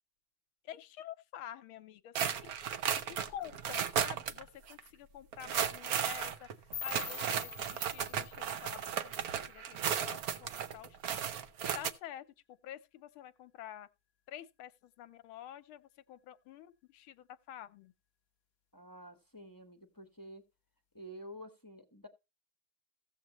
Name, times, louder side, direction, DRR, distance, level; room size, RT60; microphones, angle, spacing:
voice 1, 0.7-2.5 3.1-6.5 6.8-11.2 11.6-12.2 12.6-13.9 14.3-17.9, left 11 dB, 80° left, 1.6 m, -49 dB
sound 1, 2.1-4.4 4.7-4.8 5.3-11.9, right 8 dB, 60° right, 1.0 m, -35 dB
sound 2, 6.7-9.7, left 8 dB, 55° left, 1.1 m, -46 dB
voice 2, 18.7-20.4 20.9-22.1, equal, 15° left, 0.7 m, -50 dB
16.0 x 7.4 x 3.0 m
omnidirectional pair, 2.3 m